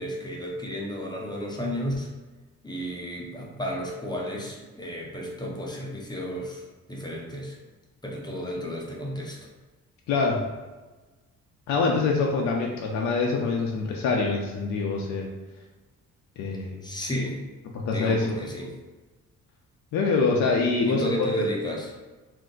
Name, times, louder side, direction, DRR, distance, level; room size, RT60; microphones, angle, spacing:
voice 1, 0.0-2.1 2.6-7.6 8.0-9.4 16.8-17.4 17.9-18.7 20.8-21.9, equal, 15° left, -2 dB, 0.6 m, -32 dB
voice 2, 10.1-10.4 11.7-15.3 16.4-16.8 17.7-18.3 19.9-21.3, left 4 dB, 70° left, 0 dB, 0.5 m, -25 dB
2.5 x 2.1 x 3.7 m, 1.2 s
cardioid pair, 90°, 30 cm